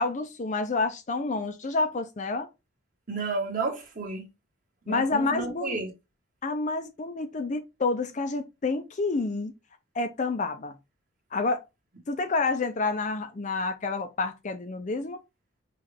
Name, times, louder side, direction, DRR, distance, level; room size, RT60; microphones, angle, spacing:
voice 1, 0.0-2.5 4.9-5.8 6.4-9.5 9.9-10.8 11.3-11.6 12.1-15.2, left 3 dB, 35° left, 0.4 m, -29 dB
voice 2, 3.1-4.3 4.9-5.9, right 3 dB, 40° right, 1.4 m, -31 dB
5.6 x 2.4 x 3.3 m
head